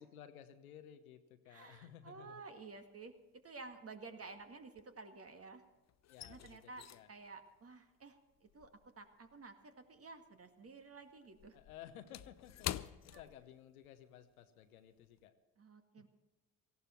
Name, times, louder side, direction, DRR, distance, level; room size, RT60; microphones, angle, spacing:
voice 1, 0.0-2.4 6.1-7.1 11.5-15.3 16.0-16.1, left 10 dB, 85° left, 10 dB, 1.0 m, -56 dB
voice 2, 1.5-3.1 3.4-5.6 6.2-8.7 9.0-11.6 13.1-13.2 15.6-16.1, right 3 dB, 35° right, 6 dB, 2.0 m, -53 dB
sound 1, 2.6-3.2 3.5-5.4 5.7-10.4 10.7-14.0 14.3-14.5 15.0-15.2, left 12 dB, 40° left, 0.6 m, -48 dB
18.0 x 15.0 x 4.4 m, 1.2 s
hypercardioid pair, 50°, 42 cm